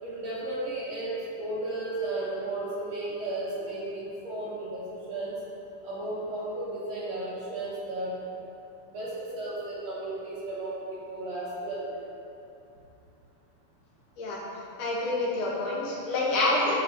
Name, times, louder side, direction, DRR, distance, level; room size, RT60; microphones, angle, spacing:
voice 1, 0.0-5.4 5.8-8.1 8.9-11.9, right 2 dB, 60° right, -8 dB, 1.9 m, -34 dB
voice 2, 14.8-16.8, left 2 dB, 65° left, -5 dB, 2.7 m, -27 dB
12.5 x 5.1 x 2.9 m, 2.7 s
omnidirectional pair, 4.1 m